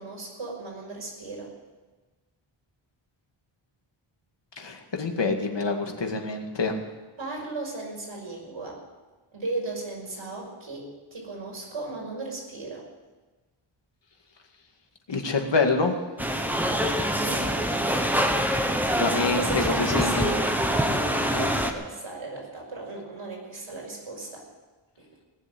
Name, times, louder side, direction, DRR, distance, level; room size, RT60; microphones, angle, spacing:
voice 1, 0.0-1.5 7.2-8.8 9.3-12.9 17.2-17.6 19.2-24.5 25.0-25.1, right 3 dB, 70° right, -2 dB, 5.5 m, -36 dB
voice 2, 4.6-6.7 15.1-15.9 19.0-20.3 21.3-21.5, left 4 dB, 55° left, 3 dB, 2.1 m, -26 dB
sound 1, 16.2-21.7, equal, 5° right, 1.2 m, -25 dB
18.5 x 7.3 x 9.8 m, 1.2 s
wide cardioid pair, 125°, 50 cm